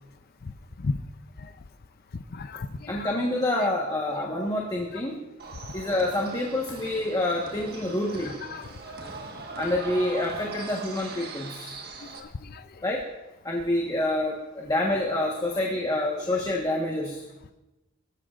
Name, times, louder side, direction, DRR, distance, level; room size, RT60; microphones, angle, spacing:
voice 1, 2.1-3.1 8.5-8.6 12.0-12.6, left 3 dB, 50° left, 11 dB, 0.5 m, -34 dB
voice 2, 2.9-5.2 5.7-8.3 9.6-11.8 12.8-13.0 13.4-17.2, left 1 dB, 20° left, -2 dB, 1.3 m, -27 dB
sound 1, 5.4-12.2, right 3 dB, 50° right, 1.5 m, -40 dB
21.0 x 14.0 x 2.5 m, 1.0 s
head